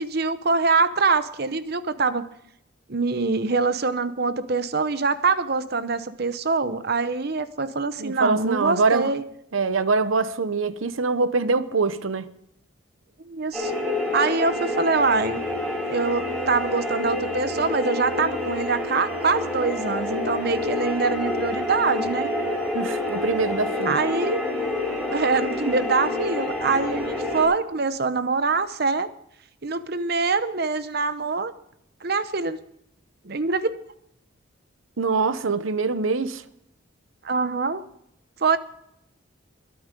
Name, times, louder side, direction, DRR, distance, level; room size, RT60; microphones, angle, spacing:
voice 1, 0.0-2.2 2.9-9.2 13.2-13.7 14.1-15.4 15.8-22.3 23.8-24.4 25.1-29.1 29.6-31.5 32.0-32.6 33.2-33.7 37.2-37.8 38.4-38.6, right 4 dB, 50° right, 0.9 m, -24 dB
voice 2, 8.0-9.1 9.5-12.3 22.7-24.0 35.0-36.4, right 4 dB, 85° right, 0.8 m, -24 dB
sound 1, 13.5-27.4, left 2 dB, 5° right, 6.3 m, -28 dB
22.0 x 8.9 x 5.3 m
head